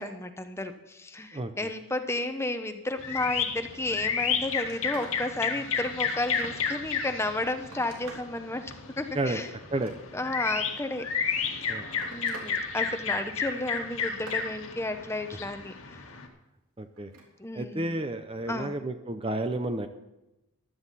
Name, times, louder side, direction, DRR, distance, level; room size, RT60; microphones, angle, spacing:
voice 1, 0.0-9.5 10.1-11.8 12.1-16.0 17.4-17.9 18.5-18.8, left 2 dB, 10° left, 7 dB, 0.8 m, -33 dB
voice 2, 1.3-1.7 9.1-9.4 9.7-9.9 11.7-11.8 16.8-17.1 17.5-19.9, right 2 dB, 25° right, 8 dB, 0.6 m, -31 dB
sound 1, 3.0-16.3, left 6 dB, 70° left, 1.9 m, -32 dB
Telephone, 4.0-4.1 4.4-5.2 5.7-6.8 7.3-8.3 9.6-10.4 11.4-12.5 12.9-13.3 13.8-14.5 16.9-17.3 18.7-18.8, right 2 dB, 80° right, 3.3 m, -48 dB
15.5 x 12.0 x 4.1 m, 0.97 s
head